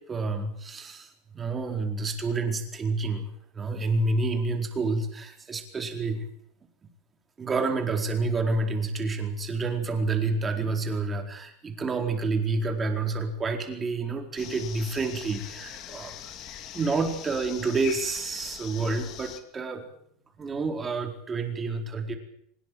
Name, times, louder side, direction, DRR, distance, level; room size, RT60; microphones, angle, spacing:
voice 1, 0.1-6.3 7.4-16.2 16.7-19.8 20.4-22.2, right 3 dB, 20° right, 3 dB, 4.5 m, -29 dB
sound 1, 14.4-19.4, left 10 dB, 40° left, 2.9 m, -42 dB
24.0 x 21.0 x 7.7 m, 0.72 s
supercardioid pair, 155°, 0 cm